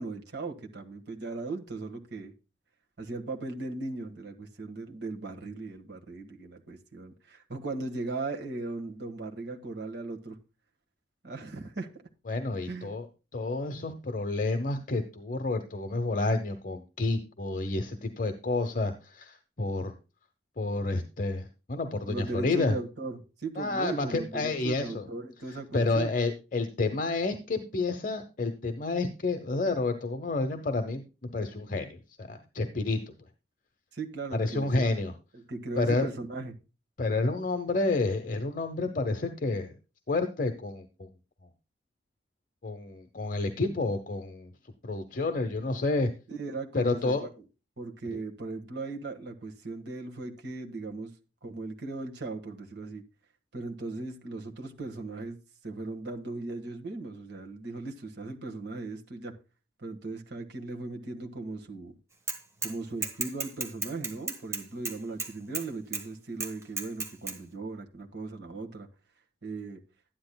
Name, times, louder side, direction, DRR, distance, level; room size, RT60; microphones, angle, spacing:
voice 1, 0.0-2.3 3.0-10.4 11.2-12.0 12.7-12.9 22.1-26.1 33.9-34.8 35.3-36.5 46.3-47.3 47.8-51.1 51.4-53.0 53.5-55.4 55.6-59.3 59.8-61.9 62.6-68.9 69.4-69.8, right 3 dB, 70° right, 1.6 m, -38 dB
voice 2, 12.3-13.1 13.3-19.9 20.6-22.8 23.6-25.1 25.7-33.1 34.3-35.1 35.8-36.1 37.0-39.7 40.1-41.1 42.6-44.5 44.8-46.1 46.7-47.3, left 3 dB, 50° left, 0.8 m, -30 dB
Bicycle / Mechanisms, 62.3-62.7 63.0-65.7 65.9-66.0 66.4-67.4, right 3 dB, 15° right, 1.3 m, -33 dB
12.5 x 10.0 x 2.2 m
head